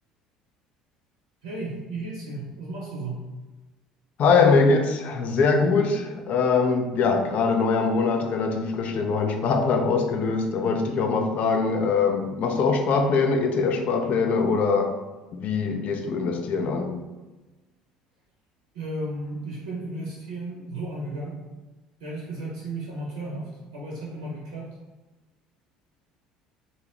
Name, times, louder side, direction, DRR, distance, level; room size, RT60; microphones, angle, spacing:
voice 1, 1.4-3.2 18.7-21.4 22.0-24.8, right 2 dB, 80° right, 0.5 m, -34 dB
voice 2, 4.2-14.9 15.3-17.0, left 4 dB, 50° left, 0.3 m, -22 dB
2.6 x 2.0 x 2.9 m
hypercardioid pair, 60°, 3 cm